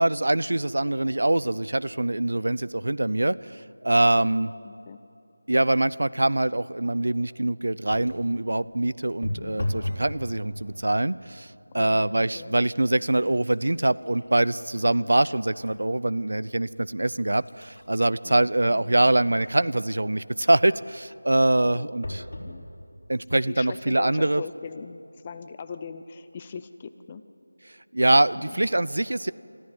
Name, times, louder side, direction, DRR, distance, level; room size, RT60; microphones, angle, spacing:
voice 1, 0.0-4.5 5.5-22.2 23.1-24.4 27.9-29.3, right 1 dB, 65° right, 18 dB, 0.5 m, -24 dB
voice 2, 4.6-5.0 9.4-9.8 11.7-12.6 15.0-15.1 21.6-21.9 22.4-22.7 23.3-27.2 28.3-28.7, left 5 dB, 15° left, 11 dB, 0.4 m, -41 dB
sound 1, 7.9-8.3 9.2-10.1 10.5-11.0 11.7-11.9 12.2-15.8 16.3-16.4 17.1-19.8 22.0-22.5 23.2-23.3 23.6-23.7, left 1 dB, 50° left, 4.7 m, -37 dB
24.0 x 14.0 x 9.4 m, 2.7 s
figure-of-eight pair, 175°, 0 cm